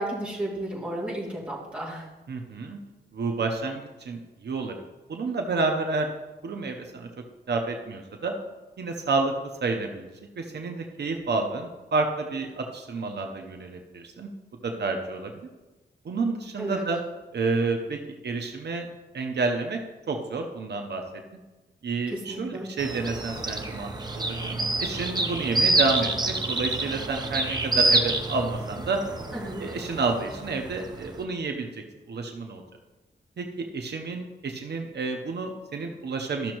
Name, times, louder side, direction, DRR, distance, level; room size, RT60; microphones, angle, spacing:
voice 1, 0.0-2.1 16.6-16.8 22.1-22.7 29.3-29.6, right 1 dB, 5° right, -6 dB, 2.3 m, -33 dB
voice 2, 2.3-2.8 3.1-4.8 5.1-6.1 6.4-7.1 7.5-8.3 8.8-9.3 9.6-14.3 14.6-15.5 16.0-17.0 17.3-18.9 19.1-19.8 20.1-21.0 21.8-29.0 29.6-32.6 33.4-36.5, right 3 dB, 70° right, 3 dB, 0.8 m, -30 dB
sound 1, 22.8-31.2, right 2 dB, 25° right, 0.7 m, -27 dB
13.5 x 6.3 x 3.0 m, 1.2 s
wide cardioid pair, 160°, 18 cm